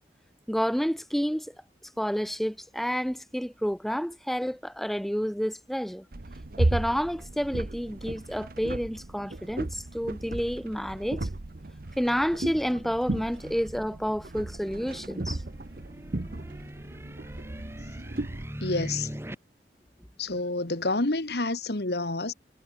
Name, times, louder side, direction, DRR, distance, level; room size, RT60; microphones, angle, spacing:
voice 1, 0.5-1.5 2.0-6.0 6.6-11.3 12.0-15.4, equal, ahead, 0.7 m, -29 dB
sound 1, 6.1-18.4, right 2 dB, 50° right, 1.0 m, -35 dB
sound 2, 14.5-19.4, equal, 15° right, 2.8 m, -40 dB
voice 2, 18.6-19.1 20.2-22.3, left 2 dB, 65° left, 1.8 m, -28 dB
head